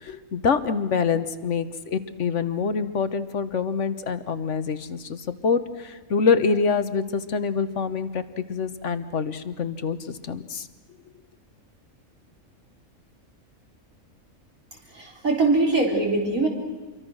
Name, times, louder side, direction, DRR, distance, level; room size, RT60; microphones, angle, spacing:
voice 1, 0.0-10.7, left 5 dB, 60° left, 12 dB, 1.4 m, -26 dB
voice 2, 14.7-16.5, right 3 dB, 70° right, 1 dB, 4.3 m, -22 dB
27.5 x 23.5 x 6.4 m, 1.3 s
omnidirectional pair, 1.5 m